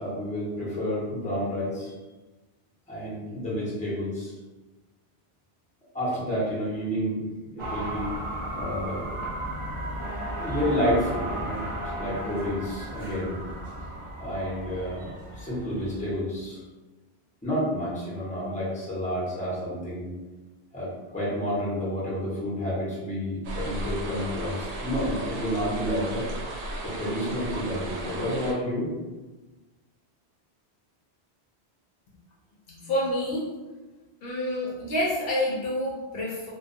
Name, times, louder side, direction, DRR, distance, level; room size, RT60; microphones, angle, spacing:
voice 1, 0.0-2.0 2.9-4.3 5.9-7.3 7.5-8.1 8.5-9.0 10.3-13.4 14.2-16.6 17.4-20.1 20.7-26.3 26.8-28.9, equal, 10° left, -9 dB, 0.7 m, -30 dB
sound 1, 7.6-16.2, right 1 dB, 35° right, 0.6 m, -34 dB
sound 2, 23.4-28.5, right 1 dB, 90° right, 0.9 m, -35 dB
voice 2, 32.7-33.5 34.2-36.5, left 1 dB, 65° left, -5 dB, 0.7 m, -28 dB
2.3 x 2.2 x 2.5 m, 1.2 s
omnidirectional pair, 1.1 m